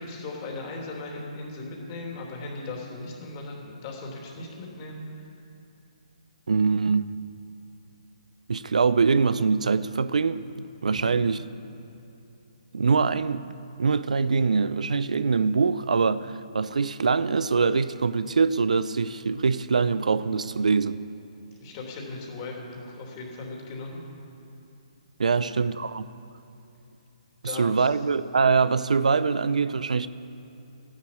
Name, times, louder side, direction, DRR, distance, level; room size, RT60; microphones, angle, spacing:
voice 1, 0.0-5.0 10.9-11.1 21.6-24.0 25.3-25.5 27.4-27.9, left 2 dB, 30° left, -1 dB, 3.1 m, -38 dB
voice 2, 6.5-7.0 8.5-11.5 12.7-21.0 25.2-26.0 27.4-30.1, right 5 dB, 85° right, 15 dB, 0.6 m, -23 dB
13.5 x 11.0 x 8.6 m, 2.7 s
hypercardioid pair, 160°, 4 cm